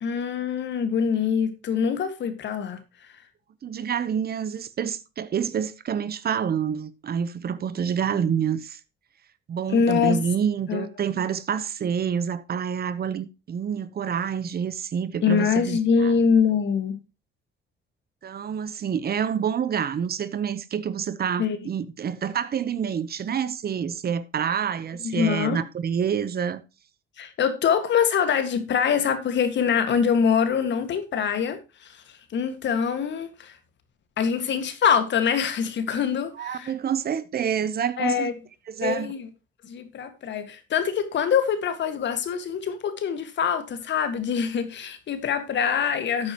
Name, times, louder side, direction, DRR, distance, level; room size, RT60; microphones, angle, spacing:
voice 1, 0.0-3.1 9.7-10.2 10.7-10.9 15.2-17.0 21.4-21.6 25.0-25.6 27.2-33.6 34.2-36.7 38.0-38.3 38.8-39.3 39.6-46.3, left 7 dB, 65° left, 1.9 m, -24 dB
voice 2, 3.6-8.8 9.5-16.1 18.2-26.6 36.4-38.3 38.7-39.1, right 7 dB, 50° right, 1.0 m, -27 dB
12.5 x 8.8 x 3.0 m
cardioid pair, 90°, 20 cm